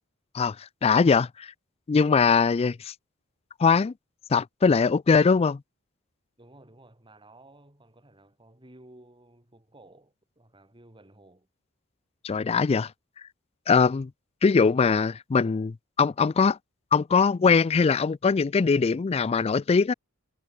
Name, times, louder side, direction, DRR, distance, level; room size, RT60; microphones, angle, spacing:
voice 1, 0.8-1.5 1.9-2.9 3.6-3.9 4.3-5.6 12.2-12.9 13.7-14.1 14.4-16.6 16.9-19.9, left 5 dB, 30° left, 0.3 m, -21 dB
voice 2, 6.4-11.5, right 1 dB, 25° right, 3.8 m, -54 dB
head